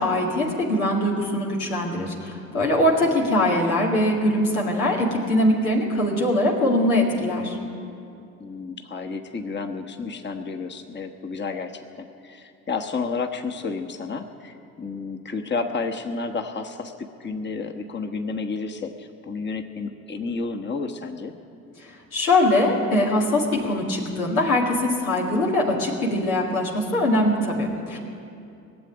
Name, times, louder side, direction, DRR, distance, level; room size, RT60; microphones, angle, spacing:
voice 1, 0.0-7.6 22.1-28.0, left 1 dB, 85° left, -2 dB, 2.0 m, -22 dB
voice 2, 8.4-21.4, left 4 dB, 25° left, 4 dB, 1.2 m, -31 dB
19.0 x 7.6 x 10.0 m, 2.6 s
hypercardioid pair, 55°, 42 cm